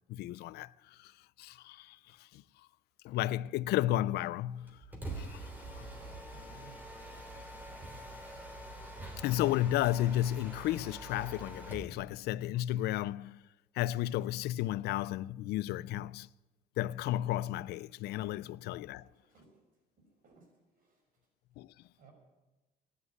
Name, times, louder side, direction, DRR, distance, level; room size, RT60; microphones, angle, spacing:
voice 1, 0.1-1.1 1.4-2.4 3.0-4.8 5.2-5.5 5.7-5.8 9.2-13.4 13.8-16.3 16.8-19.1 21.6-21.7, left 14 dB, 75° left, 0.4 m, -33 dB
Mechanisms, 4.7-11.9, right 1 dB, 10° right, 3.4 m, -45 dB
voice 2, 6.3-6.8 19.0-19.6 20.0-20.5 20.7-21.0 21.9-22.1, right 5 dB, 55° right, 5.8 m, -59 dB
13.0 x 10.0 x 9.6 m
cardioid pair, 110°, 17 cm